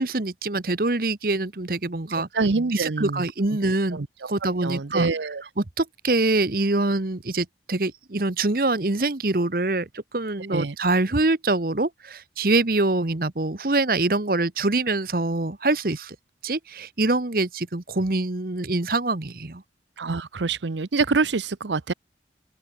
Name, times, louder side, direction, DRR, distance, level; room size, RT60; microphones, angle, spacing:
voice 1, 0.0-2.3 2.7-4.0 4.3-16.2 16.4-19.6, right 2 dB, 55° right, 1.1 m, -24 dB
voice 2, 2.3-3.2 3.9-4.1 4.6-5.4 10.5-10.7 20.0-21.9, right 4 dB, 85° right, 0.8 m, -25 dB
open air
head